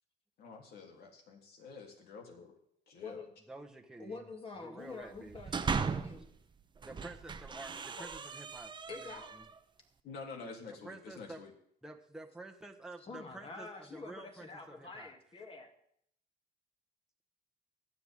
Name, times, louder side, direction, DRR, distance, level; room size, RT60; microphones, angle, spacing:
voice 1, 0.4-2.6 2.9-3.3 10.0-11.5, left 4 dB, 70° left, 1 dB, 3.3 m, -48 dB
voice 2, 3.5-4.2 4.6-5.7 6.8-9.5 10.7-11.4 11.8-15.2, right 2 dB, 5° right, 1 dB, 1.4 m, -50 dB
voice 3, 4.0-6.3 7.9-8.1 8.9-9.3 13.1-15.7, left 4 dB, 35° left, 3 dB, 2.8 m, -47 dB
sound 1, 5.1-6.3 6.8-9.6, right 5 dB, 25° right, 0.9 m, -38 dB
24.0 x 8.2 x 3.7 m, 0.68 s
cardioid pair, 110°, 17 cm